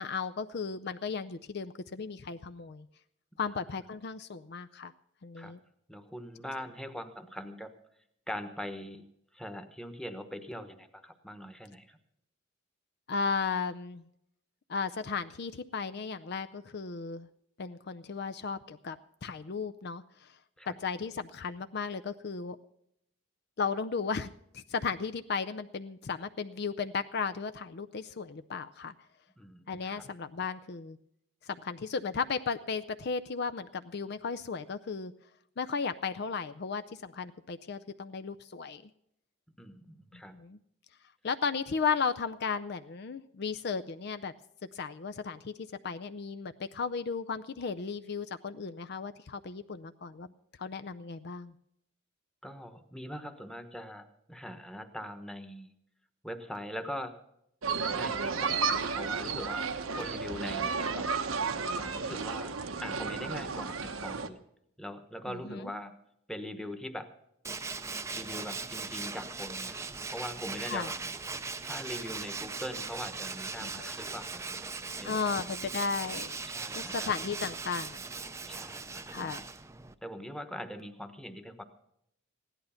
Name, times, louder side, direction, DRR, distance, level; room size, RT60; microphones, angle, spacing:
voice 1, 0.0-2.9 3.4-4.9 5.2-5.6 13.1-14.0 14.7-17.3 17.6-19.0 19.2-20.3 20.7-22.6 23.6-28.9 29.7-31.0 31.5-35.1 35.6-38.8 40.1-40.6 41.2-44.3 44.7-45.5 45.8-50.3 50.6-51.5 65.3-65.7 70.7-70.9 73.6-73.9 75.0-76.4 76.7-78.0 79.1-79.4, left 5 dB, 55° left, 11 dB, 0.5 m, -35 dB
voice 2, 5.9-7.7 8.3-9.0 9.3-12.0 20.6-20.8 29.4-30.0 39.6-40.3 52.4-55.7 56.2-57.1 57.9-61.1 61.8-62.5 62.8-64.4 64.8-65.9 66.3-67.1 68.1-71.0 71.6-74.7 75.0-75.3 76.4-77.1 78.5-79.3 80.0-81.6, equal, 5° left, 7 dB, 1.1 m, -42 dB
sound 1, 57.6-64.3, right 5 dB, 85° right, 1.0 m, -32 dB
Tools, 67.4-79.9, right 4 dB, 15° right, 0.5 m, -39 dB
16.0 x 11.0 x 5.7 m, 0.75 s
head